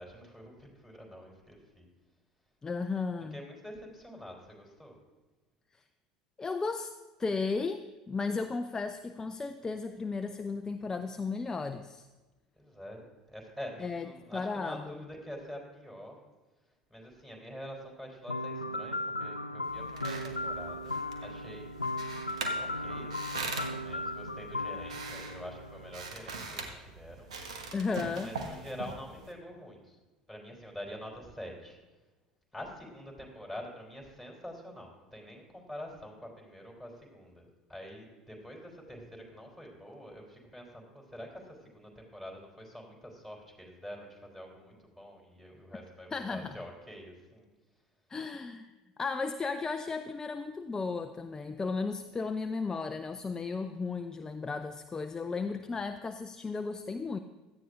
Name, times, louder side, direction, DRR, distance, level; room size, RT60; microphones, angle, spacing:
voice 1, 0.0-1.9 3.3-5.0 12.5-13.0 13.3-16.2 16.9-21.7 22.6-27.3 28.2-30.0 30.3-31.8 32.5-47.5 55.6-55.8, equal, 5° right, -1 dB, 3.5 m, -46 dB
voice 2, 2.6-3.4 6.4-6.9 7.2-12.1 13.8-15.0 27.7-28.3 46.1-46.5 48.1-48.7 49.0-57.2, left 4 dB, 15° left, 8 dB, 0.5 m, -35 dB
sound 1, 18.3-26.1, left 1 dB, 90° left, 0.4 m, -37 dB
sound 2, 19.6-29.3, right 4 dB, 70° right, 1.2 m, -42 dB
16.5 x 12.5 x 2.6 m, 1.2 s
figure-of-eight pair, 70°, 4 cm